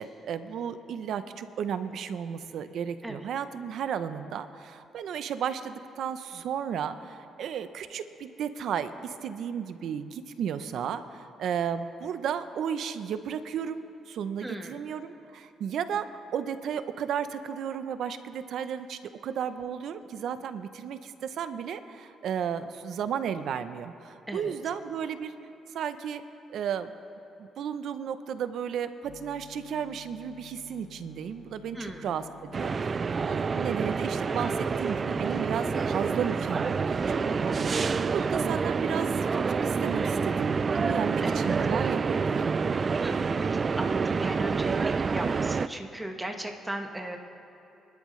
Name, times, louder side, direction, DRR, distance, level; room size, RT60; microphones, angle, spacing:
voice 1, 0.0-25.3 25.7-26.2 26.5-26.9 27.4-42.6, right 8 dB, 70° right, 11 dB, 0.7 m, -34 dB
voice 2, 14.4-14.8 24.3-24.5 31.7-32.1 41.2-41.5 43.0-47.2, right 1 dB, 10° right, 3 dB, 1.4 m, -37 dB
sound 1, 29.1-37.7, left 9 dB, 50° left, 0.8 m, -51 dB
sound 2, 32.5-45.7, right 5 dB, 40° right, 0.3 m, -28 dB
26.0 x 12.0 x 3.2 m, 2.8 s
cardioid pair, 90°, 0 cm